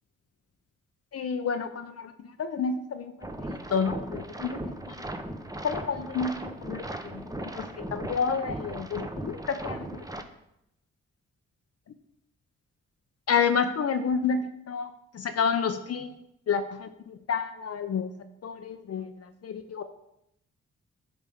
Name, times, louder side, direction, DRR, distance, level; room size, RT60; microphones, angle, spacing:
voice 1, 1.1-2.1 2.4-4.6 5.6-6.3 6.6-10.0 13.3-14.4 14.7-14.9 15.1-16.1 16.5-18.1 18.4-19.1 19.4-19.8, left 6 dB, 55° left, 7 dB, 0.6 m, -29 dB
sound 1, 3.2-10.2, right 1 dB, 10° right, 0.8 m, -37 dB
9.3 x 3.5 x 5.2 m, 0.80 s
supercardioid pair, 45°, 30 cm